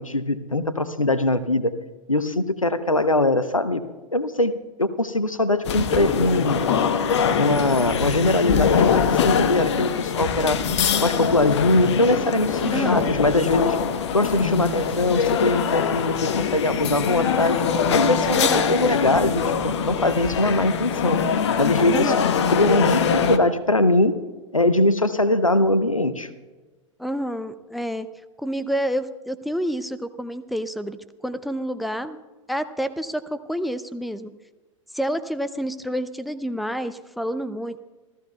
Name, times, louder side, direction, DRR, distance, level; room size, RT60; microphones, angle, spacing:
voice 1, 0.0-1.8 2.1-3.8 4.1-6.6 7.4-10.6 11.0-13.8 14.1-17.6 17.9-21.2 21.6-22.1 22.5-24.1 24.5-26.3, left 2 dB, 90° left, 14 dB, 0.8 m, -22 dB
sound 1, 5.6-23.4, left 7 dB, 60° left, 1.0 m, -23 dB
voice 2, 12.6-13.1 18.4-18.8 21.9-22.3 27.0-28.1 28.4-31.0 31.2-32.2 32.5-34.3 34.9-37.8, equal, ahead, 14 dB, 0.5 m, -28 dB
27.5 x 14.5 x 2.3 m, 1.3 s
figure-of-eight pair, 90°, 17 cm